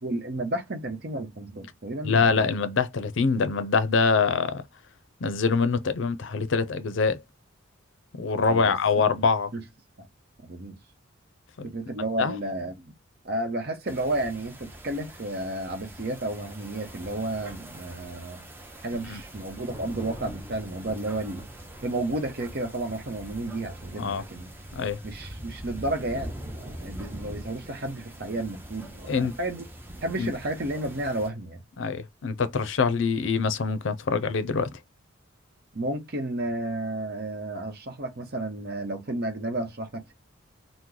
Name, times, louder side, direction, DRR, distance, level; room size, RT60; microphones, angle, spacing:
voice 1, 0.0-2.5 8.4-8.8 9.5-9.6 10.4-10.8 11.6-12.9 13.2-18.4 18.8-21.5 21.8-24.5 25.0-29.6 30.0-31.6 35.7-40.1, right 1 dB, 50° right, 0.8 m, -32 dB
voice 2, 2.0-4.6 5.2-7.2 8.2-9.5 11.6-11.7 12.2-12.4 19.1-19.2 24.0-24.2 24.7-25.0 29.1-29.3 30.2-30.3 31.8-34.7, left 5 dB, 60° left, 0.5 m, -24 dB
sound 1, 13.9-31.3, right 1 dB, 10° right, 0.5 m, -43 dB
3.0 x 2.1 x 3.7 m
head